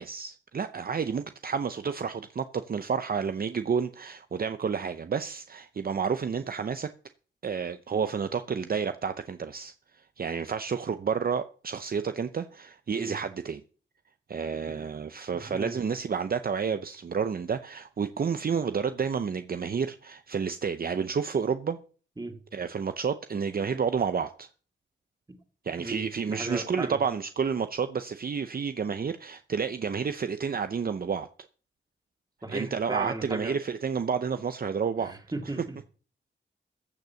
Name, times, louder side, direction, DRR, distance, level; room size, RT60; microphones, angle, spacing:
voice 1, 0.0-6.9 7.4-9.7 10.2-13.6 14.3-21.8 22.5-24.5 25.6-31.3 32.5-35.1, right 6 dB, 50° right, 0.7 m, -30 dB
voice 2, 15.5-15.8 22.2-22.4 25.3-25.4 25.8-27.0 32.4-33.6 35.0-35.9, right 2 dB, 20° right, 2.4 m, -36 dB
14.5 x 6.7 x 6.9 m
wide cardioid pair, 95°, 19 cm